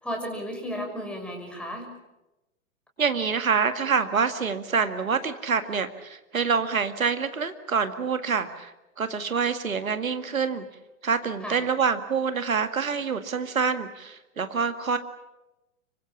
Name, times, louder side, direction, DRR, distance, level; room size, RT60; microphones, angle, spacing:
voice 1, 0.0-1.9 11.4-11.6, equal, ahead, 2 dB, 6.1 m, -33 dB
voice 2, 3.0-10.7 11.0-15.0, right 5 dB, 75° right, 9 dB, 2.1 m, -26 dB
26.0 x 24.0 x 7.3 m, 0.99 s
figure-of-eight pair, 100°, 42 cm